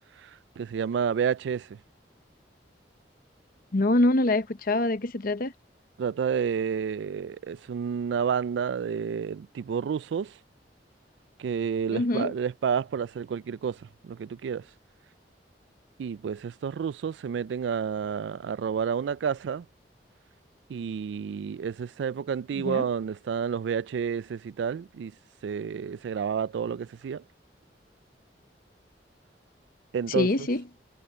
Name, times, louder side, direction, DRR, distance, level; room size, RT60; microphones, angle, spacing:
voice 1, 0.6-1.8 6.0-10.3 11.4-13.8 14.0-14.6 16.0-19.7 20.7-25.1 25.4-27.2 29.9-30.5, right 7 dB, 80° right, 0.3 m, -30 dB
voice 2, 3.7-5.5 11.9-12.3 22.6-22.8 30.1-30.6, left 2 dB, 55° left, 0.8 m, -25 dB
head